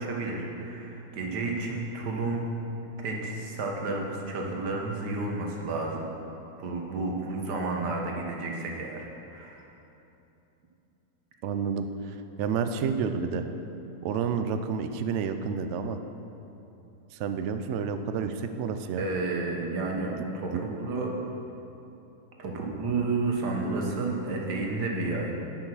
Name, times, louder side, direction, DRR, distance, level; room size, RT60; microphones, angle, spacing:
voice 1, 0.0-2.5 3.0-6.1 6.6-9.6 19.0-21.1 22.4-25.3, right 3 dB, 90° right, 0 dB, 1.8 m, -31 dB
voice 2, 11.4-13.4 14.0-16.0 17.1-19.1 20.5-20.6, right 6 dB, 70° right, 8 dB, 0.7 m, -30 dB
9.7 x 6.3 x 6.2 m, 2.9 s
omnidirectional pair, 1.7 m